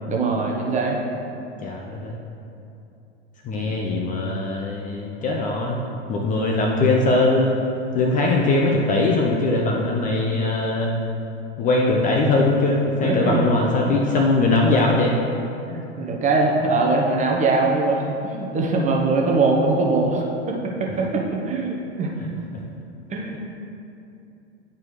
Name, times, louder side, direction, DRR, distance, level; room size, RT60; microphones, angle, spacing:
voice 1, 0.1-1.0 3.6-3.8 13.0-13.6 15.7-22.1 23.1-23.4, right 3 dB, 20° right, 0 dB, 0.9 m, -22 dB
voice 2, 1.6-2.1 3.4-5.8 6.1-7.6 7.9-10.9 11.6-15.1 22.5-22.6, left 2 dB, 20° left, -1 dB, 0.6 m, -21 dB
10.5 x 4.5 x 3.1 m, 2.7 s
figure-of-eight pair, 95°, 36 cm